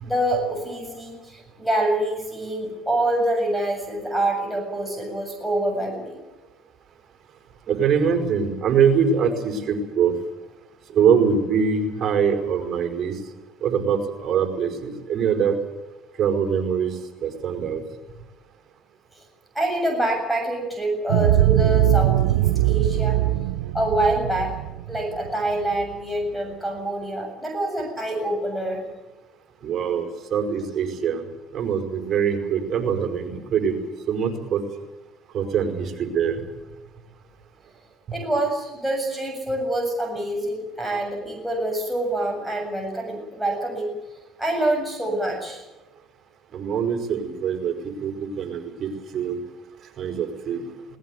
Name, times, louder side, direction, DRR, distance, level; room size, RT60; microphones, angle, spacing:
voice 1, 0.0-6.2 19.1-19.2 19.5-23.2 23.7-24.5 24.9-28.8 38.1-44.0 44.4-45.6, right 1 dB, ahead, 0 dB, 7.4 m, -26 dB
voice 2, 7.7-10.1 10.9-13.1 13.6-15.6 16.2-16.9 17.2-17.8 29.6-31.2 31.5-33.8 34.1-34.6 35.3-36.4 46.5-47.7 48.0-49.4 50.0-50.6, right 7 dB, 50° right, 4 dB, 5.2 m, -23 dB
sound 1, 21.1-25.8, right 15 dB, 90° right, 0.7 m, -21 dB
20.5 x 19.0 x 9.4 m, 1.1 s
supercardioid pair, 80°, 0 cm